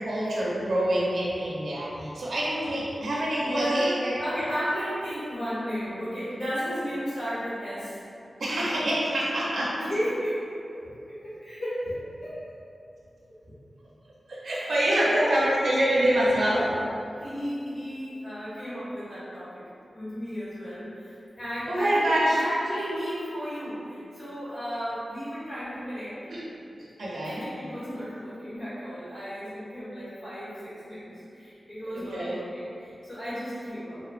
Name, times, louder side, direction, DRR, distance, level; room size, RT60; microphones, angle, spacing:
voice 1, 0.0-4.2 8.4-9.7 14.3-16.7 21.7-22.4 26.3-26.4 26.8-27.5 31.9-32.4, right 1 dB, 80° right, -7 dB, 0.5 m, -26 dB
voice 2, 2.9-8.0 9.7-10.4 10.7-10.8 11.1-12.4 14.5-14.7 15.0-15.4 16.5-16.7 17.1-19.6 19.9-26.2 27.2-34.0, equal, 90° left, -14 dB, 1.4 m, -34 dB
2.9 x 2.0 x 2.3 m, 2.6 s
wide cardioid pair, 65°, 0 cm